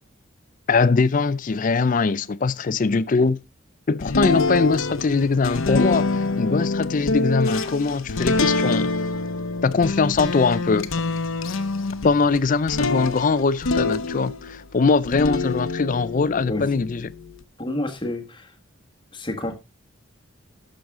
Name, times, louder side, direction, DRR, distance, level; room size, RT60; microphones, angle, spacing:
voice 1, 0.7-3.4 3.9-8.9 9.6-11.0 12.0-17.1, left 4 dB, 40° left, 0.4 m, -22 dB
sound 1, 4.0-14.6 15.0-17.4, left 3 dB, 80° left, 0.8 m, -25 dB
voice 2, 17.6-18.5 19.1-19.5, left 1 dB, 25° left, 1.4 m, -29 dB
12.0 x 6.3 x 3.6 m
head